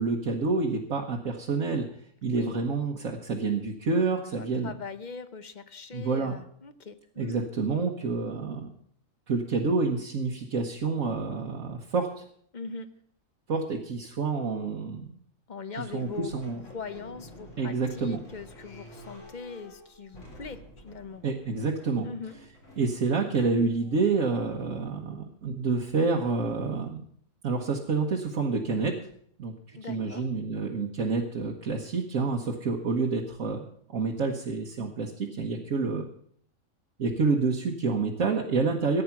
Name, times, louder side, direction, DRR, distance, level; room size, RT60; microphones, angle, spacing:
voice 1, 0.0-1.9 2.2-4.7 5.9-6.4 7.2-8.7 9.3-12.2 13.5-15.2 15.9-16.6 17.6-18.2 21.2-22.1 22.8-27.0 27.4-29.0 29.4-33.6 33.9-36.1 37.0-39.0, right 4 dB, 75° right, 0 dB, 1.6 m, -28 dB
voice 2, 4.4-7.5 12.5-12.9 15.5-16.3 16.7-21.2 22.0-22.3 29.7-30.3, left 5 dB, 40° left, 12 dB, 0.8 m, -41 dB
sound 1, 15.7-24.8, equal, 60° left, 4.0 m, -50 dB
15.0 x 9.3 x 5.9 m, 0.64 s
omnidirectional pair, 1.4 m